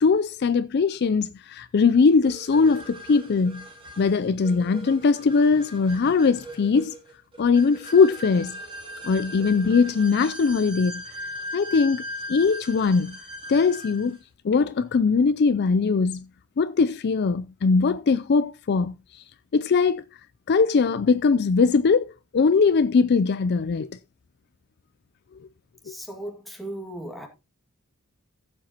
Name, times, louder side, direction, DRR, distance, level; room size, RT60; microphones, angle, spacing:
voice 1, 0.0-3.7 4.0-6.9 7.4-8.6 9.0-11.0 11.5-12.0 12.3-13.2 13.5-14.2 14.4-16.3 16.6-19.2 19.5-20.0 20.5-23.9, left 4 dB, 45° left, 0.4 m, -21 dB
sound 1, 2.2-14.2, equal, 25° right, 3.8 m, -39 dB
voice 2, 25.8-27.3, right 1 dB, ahead, 2.1 m, -36 dB
14.5 x 7.6 x 2.9 m
head